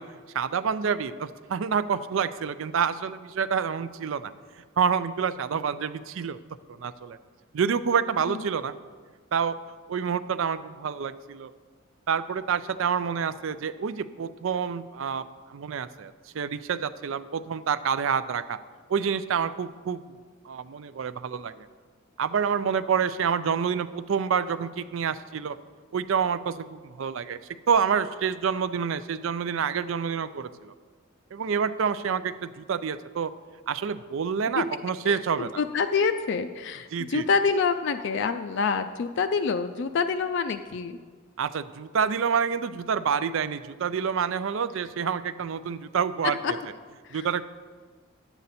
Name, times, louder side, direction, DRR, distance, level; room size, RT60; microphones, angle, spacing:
voice 1, 0.0-4.3 4.8-6.4 6.8-7.2 7.5-8.7 9.3-9.6 9.9-11.5 12.1-15.2 15.5-18.6 18.9-20.0 20.5-21.7 22.2-25.6 25.9-27.4 27.7-30.7 31.3-33.3 33.7-35.6 36.9-37.3 41.4-46.4 47.1-47.4, right 6 dB, 70° right, 14 dB, 0.4 m, -28 dB
voice 2, 35.1-41.0 46.4-46.5 47.0-47.3, left 5 dB, 60° left, 8 dB, 0.3 m, -27 dB
10.5 x 8.0 x 4.2 m, 1.5 s
head